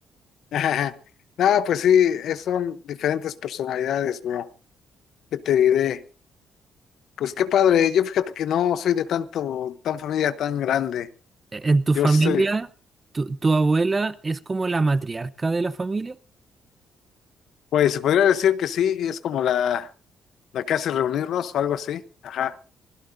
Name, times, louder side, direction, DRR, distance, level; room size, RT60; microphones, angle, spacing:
voice 1, 0.5-0.9 1.4-4.5 5.3-6.0 7.2-11.1 12.0-12.4 17.7-19.9 20.5-22.5, left 9 dB, 75° left, 0.8 m, -23 dB
voice 2, 11.5-12.7 13.1-16.2, right 3 dB, 25° right, 0.7 m, -22 dB
25.0 x 17.0 x 2.6 m
cardioid pair, 90°, 0 cm